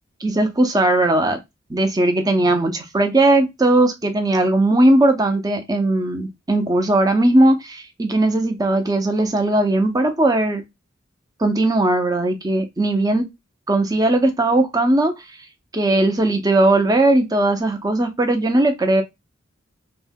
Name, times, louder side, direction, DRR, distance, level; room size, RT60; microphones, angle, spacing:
voice 1, 0.2-1.4 1.7-10.6 11.4-13.2 13.7-15.2 15.7-19.0, right 2 dB, 20° right, 0.6 m, -18 dB
2.7 x 2.1 x 3.5 m
head